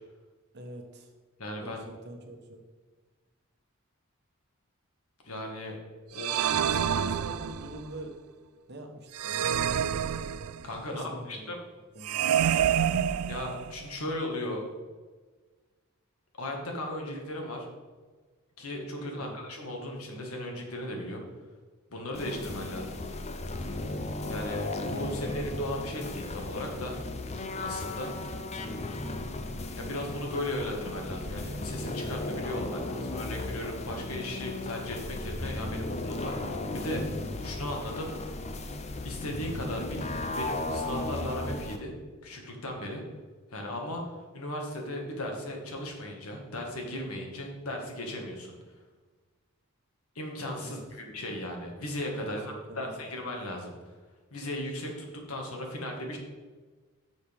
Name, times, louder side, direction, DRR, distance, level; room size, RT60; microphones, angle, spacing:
voice 1, 0.5-1.1 1.6-2.6 6.6-8.2 8.7-9.4 10.9-11.5 11.9-12.4 19.2-19.4 50.6-50.8 52.2-52.4 52.7-53.1, right 1 dB, 50° right, 3 dB, 1.2 m, -44 dB
voice 2, 1.4-1.8 5.2-5.8 6.1-6.4 10.6-11.6 13.3-14.6 16.4-17.7 18.6-21.2 21.9-23.0 24.3-27.0 27.6-28.1 29.7-37.0 37.4-38.1 39.0-40.1 40.3-41.9 42.2-43.0 43.5-44.0 44.3-48.5 50.2-53.9 54.3-56.2, left 1 dB, 85° left, 1 dB, 1.8 m, -36 dB
sound 1, 6.2-7.9 9.1-10.8 12.0-13.9, right 9 dB, 85° right, 0.4 m, -28 dB
sound 2, 22.1-41.8, left 2 dB, 30° left, 0.6 m, -35 dB
10.5 x 6.5 x 3.5 m, 1.4 s
head